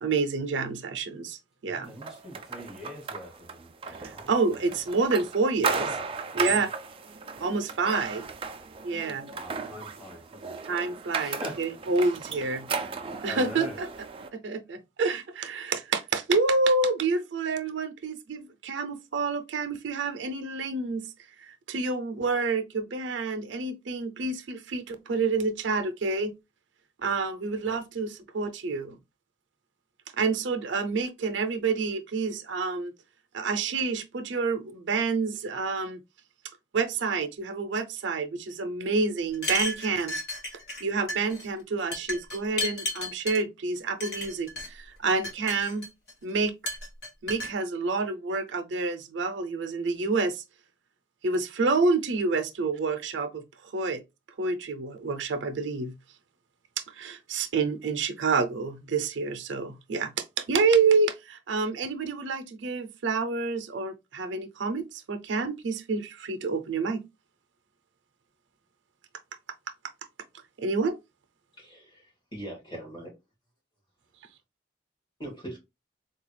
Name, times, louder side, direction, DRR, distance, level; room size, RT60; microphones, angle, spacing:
voice 1, 0.0-1.9 3.9-5.9 6.3-6.7 7.4-8.3 8.8-9.2 10.7-12.7 13.2-13.9 14.3-21.1 21.4-26.3 27.0-29.0 30.2-32.9 33.3-36.0 36.7-40.2 40.8-45.9 46.2-46.6 47.2-50.4 51.2-54.0 54.4-55.9 56.9-67.0 70.6-71.0, right 4 dB, 90° right, 0.5 m, -28 dB
voice 2, 1.6-4.3 4.6-4.7 5.6-6.0 6.3-6.7 9.3-10.6 11.2-11.7 13.3-13.8, left 1 dB, ahead, 1.1 m, -42 dB
sound 1, 2.0-14.3, right 5 dB, 30° right, 0.3 m, -35 dB
Glasses Chinking, 39.3-40.8 41.1-41.5 41.9-43.4 44.0-44.7 45.1-46.1 46.7-47.5, left 1 dB, 55° left, 1.0 m, -33 dB
voice 3, 71.6-73.1 75.2-75.6, right 1 dB, 25° left, 1.7 m, -41 dB
3.8 x 2.3 x 3.2 m
head